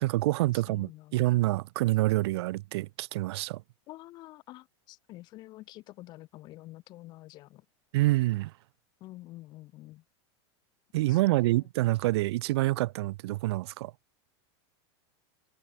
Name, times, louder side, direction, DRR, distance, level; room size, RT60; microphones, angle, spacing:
voice 1, 0.0-3.6 7.9-8.5 10.9-13.9, right 18 dB, 65° right, 0.5 m, -27 dB
voice 2, 0.5-1.4 3.9-7.6 9.0-10.0 11.1-11.7, left 17 dB, 30° left, 0.8 m, -48 dB
supercardioid pair, 170°, 15 cm